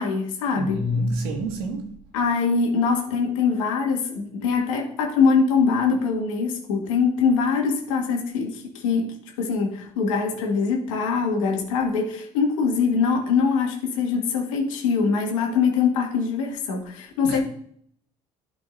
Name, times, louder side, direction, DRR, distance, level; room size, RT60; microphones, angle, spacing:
voice 1, 0.0-0.8 2.1-17.4, left 5 dB, 90° left, 1.8 m, -23 dB
voice 2, 0.5-2.0 17.2-17.4, equal, 80° right, 1.8 m, -27 dB
11.5 x 5.1 x 2.6 m
supercardioid pair, 85°, 16 cm